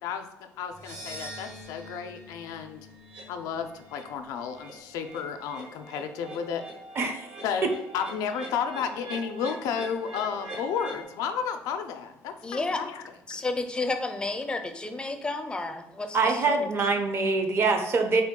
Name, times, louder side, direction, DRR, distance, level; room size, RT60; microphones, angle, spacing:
voice 1, 0.0-2.9 3.3-6.6 7.4-13.0 13.3-13.4, left 7 dB, 85° left, 7 dB, 0.4 m, -32 dB
sound 1, 0.7-5.0, equal, 65° right, 1.0 m, -46 dB
sound 2, 3.0-3.2 3.7-4.0 4.3-11.0, right 2 dB, 85° right, 1.2 m, -43 dB
voice 2, 7.0-7.3 7.6-7.7 16.1-18.2, right 4 dB, 45° right, 5 dB, 0.5 m, -24 dB
voice 3, 12.4-12.8 13.3-16.7, left 3 dB, 15° left, 6 dB, 0.4 m, -31 dB
3.8 x 2.2 x 3.6 m, 0.81 s
cardioid pair, 105°, 6 cm